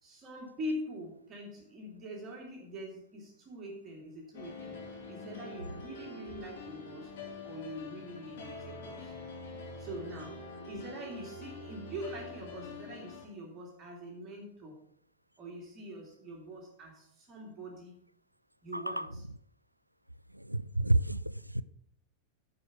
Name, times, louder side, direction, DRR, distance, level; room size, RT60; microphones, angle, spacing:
voice 1, 0.0-7.2 7.4-9.1 9.8-14.8 15.4-18.0 18.6-19.2, equal, 25° right, 2.4 m, -44 dB
sound 1, 4.3-13.2, left 3 dB, 55° left, 3.1 m, -45 dB
voice 2, 18.7-19.1 20.3-21.6, right 1 dB, 90° right, 0.3 m, -30 dB
11.0 x 5.0 x 5.8 m
figure-of-eight pair, 90°, 0 cm